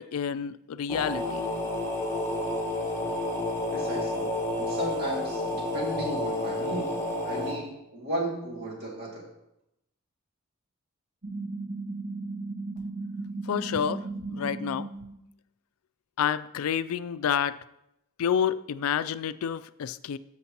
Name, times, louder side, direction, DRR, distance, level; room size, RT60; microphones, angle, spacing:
voice 1, 0.0-1.4 13.5-14.9 16.2-17.6 18.2-20.2, left 8 dB, 85° left, 15 dB, 0.3 m, -29 dB
sound 1, 0.9-7.5, left 1 dB, 10° left, 1.3 m, -30 dB
voice 2, 3.7-4.3 4.5-9.3, right 1 dB, 50° right, -2 dB, 2.3 m, -35 dB
sound 2, 11.2-15.1, right 3 dB, 75° right, 1.6 m, -36 dB
13.5 x 6.5 x 2.9 m, 0.84 s
head